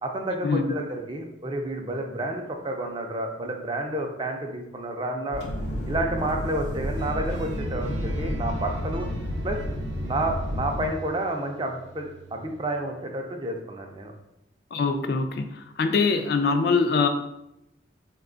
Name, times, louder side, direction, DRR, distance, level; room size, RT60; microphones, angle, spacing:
voice 1, 0.0-5.4 5.9-9.1 9.4-9.6 10.0-14.1, right 1 dB, 25° right, 3 dB, 0.4 m, -30 dB
sound 1, 5.3-10.9, equal, 70° left, 0.8 m, -30 dB
sound 2, 7.0-13.2, right 5 dB, 80° right, 0.7 m, -44 dB
voice 2, 14.7-15.5 15.8-17.1, left 4 dB, 55° left, 7 dB, 0.3 m, -23 dB
4.0 x 2.3 x 3.8 m, 0.85 s
head